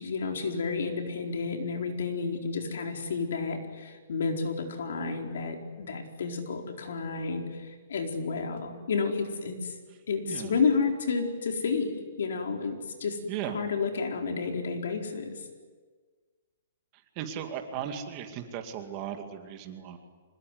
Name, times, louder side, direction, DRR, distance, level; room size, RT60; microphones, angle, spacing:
voice 1, 0.0-9.8 10.1-13.2 13.5-15.4, left 4 dB, 70° left, 3 dB, 4.4 m, -31 dB
voice 2, 10.2-10.6 13.3-13.6 17.2-20.0, right 9 dB, 25° right, 5 dB, 2.3 m, -36 dB
25.5 x 21.5 x 9.6 m, 1.5 s
hypercardioid pair, 170°, 0 cm